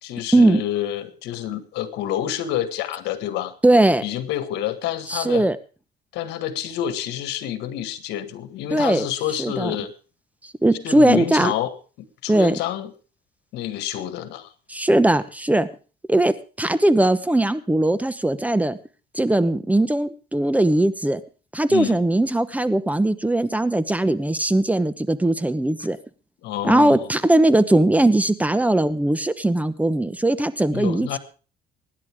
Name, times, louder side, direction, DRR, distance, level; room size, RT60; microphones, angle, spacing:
voice 1, 0.0-3.5 4.0-5.5 6.1-9.9 10.8-11.7 12.2-12.9 13.5-14.5 21.7-22.0 26.4-27.1 30.7-31.2, left 11 dB, 85° left, 11 dB, 1.9 m, -28 dB
voice 2, 3.6-4.0 5.1-5.6 8.7-9.1 9.4-9.8 10.4-11.5 12.3-12.6 14.7-15.7 16.1-18.8 19.1-21.2 21.5-26.0 26.6-31.2, right 1 dB, 10° right, 14 dB, 1.0 m, -19 dB
24.5 x 10.5 x 3.6 m, 0.36 s
cardioid pair, 110°, 17 cm